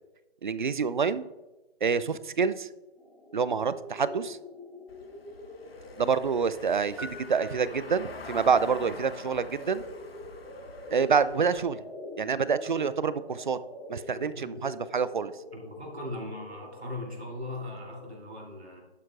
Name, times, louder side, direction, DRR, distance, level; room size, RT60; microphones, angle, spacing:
voice 1, 0.4-1.3 1.8-2.7 3.3-4.4 6.0-9.8 10.9-11.8 12.2-13.6 13.9-15.3, right 5 dB, 50° right, 16 dB, 0.5 m, -27 dB
sound 1, 2.9-18.1, left 2 dB, 5° left, 1.5 m, -45 dB
Car passing by / Engine, 4.9-11.6, left 3 dB, 65° left, 1.1 m, -46 dB
sound 2, 7.0-8.4, equal, 30° right, 0.8 m, -45 dB
voice 2, 15.5-18.8, left 1 dB, 80° right, -1 dB, 3.3 m, -39 dB
11.5 x 9.4 x 2.5 m, 1.0 s
figure-of-eight pair, 150°, 32 cm